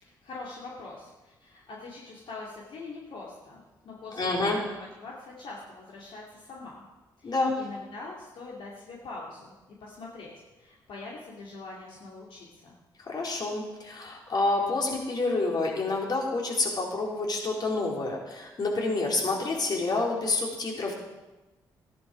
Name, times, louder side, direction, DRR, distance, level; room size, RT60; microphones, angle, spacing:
voice 1, 0.0-6.8 7.2-9.5 9.8-12.7, left 3 dB, 70° left, -4 dB, 2.7 m, -43 dB
voice 2, 4.1-4.6 7.2-7.6 13.1-20.9, left 3 dB, 50° left, -2 dB, 4.2 m, -28 dB
14.5 x 10.5 x 5.1 m, 1.1 s
supercardioid pair, 55°, 9 cm